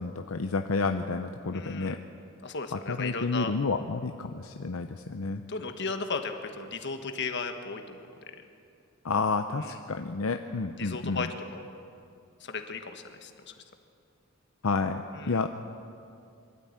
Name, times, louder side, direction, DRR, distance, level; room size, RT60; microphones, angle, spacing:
voice 1, 0.0-2.0 2.7-5.4 9.0-11.3 14.6-15.5, left 4 dB, 80° left, 6 dB, 0.7 m, -30 dB
voice 2, 1.5-2.0 2.4-3.5 5.5-8.0 9.6-9.8 10.8-11.7 12.4-13.5 15.1-15.4, left 4 dB, 55° left, 6 dB, 1.5 m, -35 dB
23.0 x 13.0 x 8.8 m, 2.5 s
head